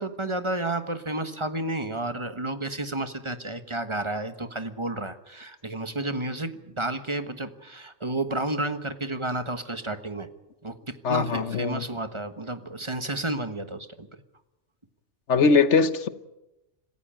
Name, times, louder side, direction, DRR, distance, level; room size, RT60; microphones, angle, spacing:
voice 1, 0.0-10.3 10.6-14.1, right 2 dB, 25° right, 1.3 m, -31 dB
voice 2, 11.0-11.8 15.3-16.1, left 5 dB, 60° left, 1.3 m, -21 dB
26.5 x 15.5 x 8.9 m
omnidirectional pair, 1.4 m